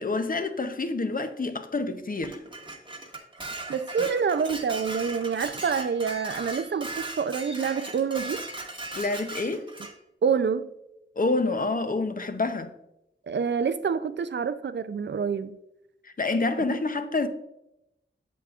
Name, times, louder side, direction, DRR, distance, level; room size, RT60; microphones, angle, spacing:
voice 1, 0.0-2.4 4.0-4.1 8.9-9.7 11.2-12.7 16.0-17.3, left 3 dB, 45° left, 0.6 m, -28 dB
Dishes pots and pans, 2.2-9.9, right 2 dB, 25° right, 1.1 m, -38 dB
voice 2, 3.7-8.4 10.2-10.7 13.3-15.6, right 6 dB, 60° right, 0.4 m, -27 dB
8.3 x 7.0 x 2.4 m
wide cardioid pair, 85°, 20 cm